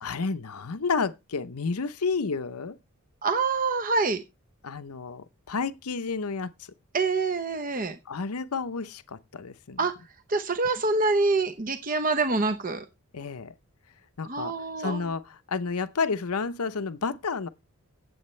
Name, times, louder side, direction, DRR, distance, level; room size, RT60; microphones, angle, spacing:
voice 1, 0.0-2.8 4.6-6.5 8.1-9.8 13.1-13.5 14.2-17.5, left 4 dB, 85° left, 0.8 m, -31 dB
voice 2, 3.2-4.2 6.9-8.0 9.8-9.9 10.3-12.8 14.2-15.1, right 3 dB, 40° right, 0.9 m, -26 dB
16.0 x 7.9 x 3.2 m
head